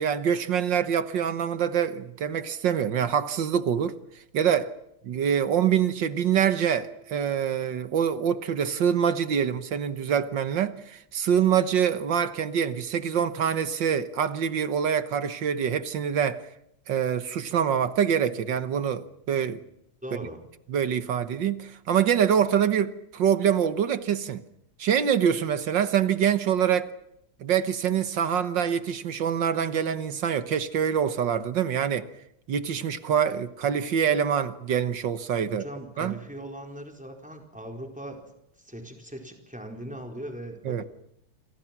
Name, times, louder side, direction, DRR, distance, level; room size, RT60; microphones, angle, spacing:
voice 1, 0.0-4.0 4.3-4.7 5.0-16.4 16.9-19.6 20.7-24.4 24.8-26.9 27.4-32.1 32.5-35.6 36.0-36.1 40.7-40.8, right 8 dB, 65° right, 1.8 m, -25 dB
voice 2, 20.0-20.4 35.5-38.2 38.6-40.8, right 1 dB, 5° right, 4.5 m, -39 dB
29.0 x 25.5 x 6.0 m
omnidirectional pair, 2.3 m